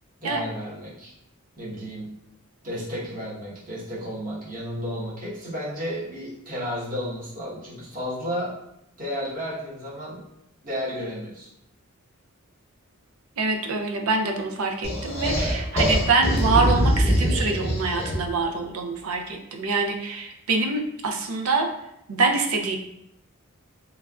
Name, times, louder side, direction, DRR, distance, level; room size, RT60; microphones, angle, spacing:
voice 1, 0.2-1.1 1.6-2.2 2.6-8.6 9.0-10.2 10.6-11.5, equal, 40° right, -7 dB, 1.1 m, -32 dB
voice 2, 13.4-21.7 22.1-22.8, right 3 dB, 75° right, 3 dB, 0.5 m, -25 dB
sound 1, 14.8-18.4, equal, 30° left, 0.8 m, -23 dB
3.1 x 2.4 x 2.3 m, 0.80 s
head